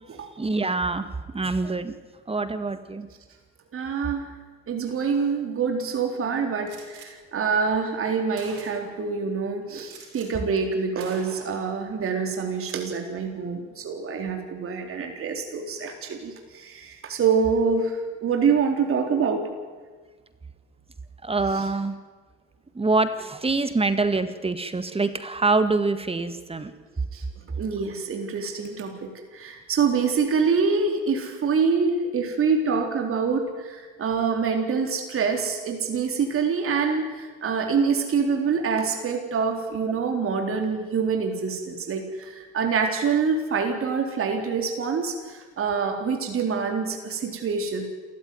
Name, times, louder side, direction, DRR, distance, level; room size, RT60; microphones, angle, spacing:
voice 1, 0.4-1.9 2.3-3.1 21.2-22.0 22.7-26.7, right 3 dB, 20° right, 11 dB, 1.8 m, -25 dB
voice 2, 3.7-4.2 4.7-19.4 21.4-21.5 27.1-27.2 27.6-47.8, right 5 dB, 40° right, 3 dB, 4.0 m, -26 dB
Gunshot gunfire, 6.7-7.1 7.9-8.0 8.4-9.0 9.8-10.3 10.6-10.7 11.0-11.7 12.5-12.9, right 6 dB, 70° right, 6.7 m, -44 dB
28.0 x 15.0 x 9.5 m, 1.4 s
supercardioid pair, 80°, 32 cm